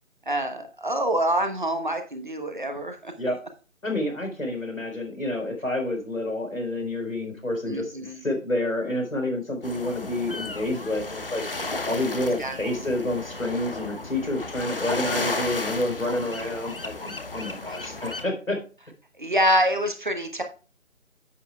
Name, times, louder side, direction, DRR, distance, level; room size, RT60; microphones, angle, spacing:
voice 1, 0.3-3.1 7.7-8.2 12.4-12.6 19.2-20.4, right 1 dB, 35° right, 6 dB, 1.0 m, -26 dB
voice 2, 3.8-18.6, left 1 dB, 75° left, 3 dB, 4.5 m, -29 dB
sound 1, 9.6-18.2, left 2 dB, 45° left, 0.9 m, -33 dB
10.5 x 8.2 x 2.3 m, 0.34 s
figure-of-eight pair, 160°, 40 cm